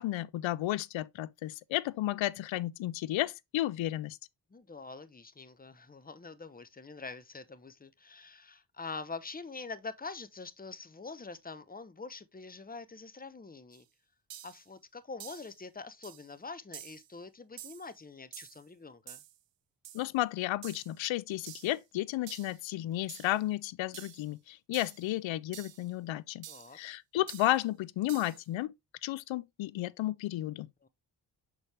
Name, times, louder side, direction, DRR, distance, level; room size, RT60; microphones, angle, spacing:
voice 1, 0.0-4.2 19.9-26.5 26.7-28.7 29.0-30.7, left 15 dB, 85° left, 0.5 m, -33 dB
voice 2, 4.5-13.8 14.4-19.2 26.5-26.8 30.8-30.9, left 4 dB, 20° left, 0.9 m, -45 dB
sound 1, 13.7-13.8 14.3-14.6 15.2-15.5 16.0-16.3 16.7-17.1 17.6-17.9 18.3-18.6 19.1-19.4 19.8-20.1 20.6-21.0 21.5-21.8 22.3-22.6 23.1-23.4 23.9-24.3 24.7-25.1 25.5-25.9 26.4-26.8 27.3-27.6 28.1-28.4, right 12 dB, 70° right, 0.8 m, -49 dB
6.3 x 4.5 x 3.3 m
cardioid pair, 50°, 45 cm